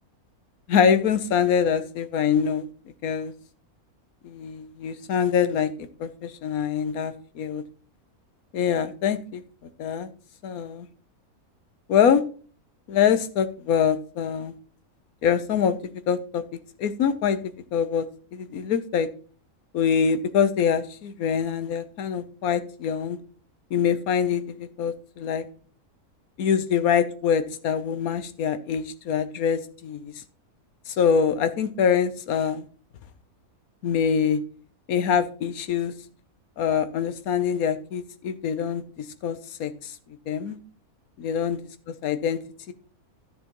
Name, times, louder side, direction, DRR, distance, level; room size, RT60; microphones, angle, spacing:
voice 1, 0.7-2.7 3.0-3.3 4.2-7.6 8.5-9.4 9.8-10.1 10.4-10.9 11.9-12.2 12.9-14.5 15.2-15.8 16.1-16.4 16.8-17.4 17.7-18.0 18.3-19.1 19.7-23.2 23.7-25.4 26.4-30.1 30.9-32.7 33.8-34.4 34.9-35.9 36.6-39.9 40.3-40.6 41.2-41.6 42.0-42.4 42.7-42.8, left 7 dB, 75° left, 11 dB, 1.3 m, -24 dB
13.0 x 6.8 x 3.0 m, 0.41 s
omnidirectional pair, 1.6 m